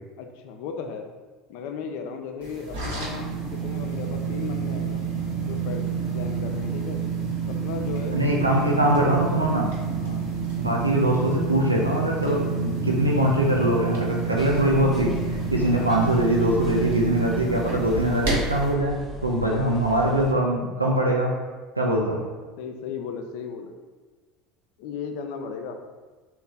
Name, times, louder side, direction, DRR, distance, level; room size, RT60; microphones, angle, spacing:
voice 1, 0.2-1.1 1.5-5.1 5.5-5.9 6.1-7.0 7.5-8.2 10.0-10.3 15.7-16.0 19.5-20.3 22.6-23.8 24.8-25.8, left 6 dB, 60° left, 5 dB, 0.3 m, -36 dB
sound 1, 2.4-18.7, right 5 dB, 70° right, 0.9 m, -29 dB
voice 2, 8.1-9.7 10.6-21.4 21.8-22.2, right 1 dB, 90° right, -2 dB, 0.3 m, -22 dB
sound 2, 14.4-20.3, equal, 10° left, 0.6 m, -39 dB
3.0 x 2.0 x 3.8 m, 1.3 s
figure-of-eight pair, 70°, 0 cm